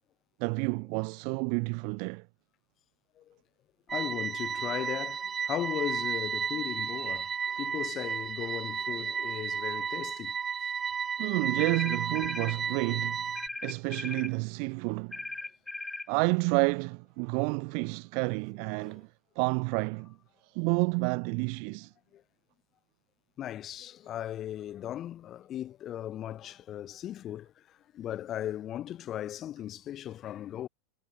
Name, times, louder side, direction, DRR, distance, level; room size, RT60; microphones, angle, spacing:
voice 1, 0.4-2.2 11.2-13.2 13.6-15.2 16.1-19.1 19.3-20.1 20.5-21.9, right 40 dB or more, 45° right, 1.7 m, -30 dB
voice 2, 3.9-7.3 7.6-10.3 18.7-18.9 22.1-22.2 23.4-27.5 27.9-30.7, left 11 dB, 30° left, 1.7 m, -37 dB
sound 1, 3.9-13.5, right 6 dB, 20° right, 2.7 m, -33 dB
sound 2, 11.6-12.6 13.4-14.3 15.1-16.1, left 2 dB, 10° left, 4.1 m, -38 dB
figure-of-eight pair, 90°, 0 cm